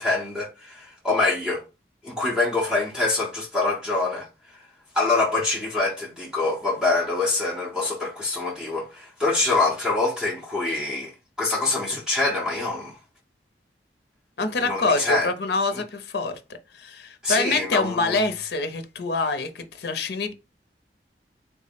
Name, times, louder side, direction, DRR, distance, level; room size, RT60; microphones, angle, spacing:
voice 1, 0.0-1.6 2.0-4.3 4.9-11.1 11.4-12.9 14.6-15.3 17.2-18.2, left 3 dB, 5° right, 0.7 m, -25 dB
voice 2, 14.4-16.4 16.7-20.3, left 3 dB, 65° left, 0.5 m, -25 dB
3.6 x 2.0 x 4.0 m
head